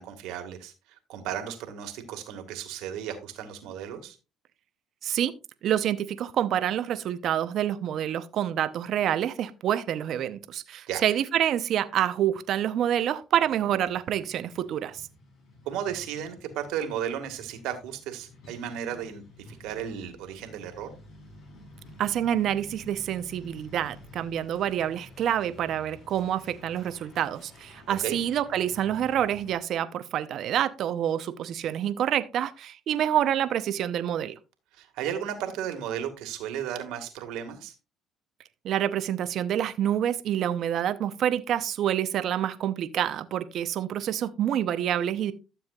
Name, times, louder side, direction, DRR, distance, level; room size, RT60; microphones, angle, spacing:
voice 1, 0.0-4.2 10.9-11.0 15.7-20.9 27.9-28.2 34.7-37.7, right 9 dB, 80° right, 1.8 m, -34 dB
voice 2, 5.6-15.1 22.0-34.3 38.6-45.3, right 10 dB, 60° right, 0.8 m, -27 dB
Truck, 13.3-29.5, left 1 dB, 65° left, 4.1 m, -51 dB
12.5 x 7.1 x 2.4 m
supercardioid pair, 80°, 0 cm